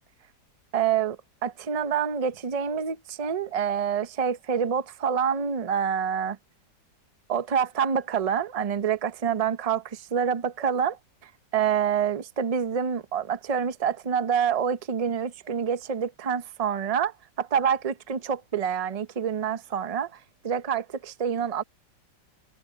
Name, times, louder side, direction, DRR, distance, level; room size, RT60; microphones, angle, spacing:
voice 1, 0.7-6.4 7.3-20.2 20.4-21.6, right 7 dB, 45° right, 0.5 m, -27 dB
omnidirectional pair, 1.9 m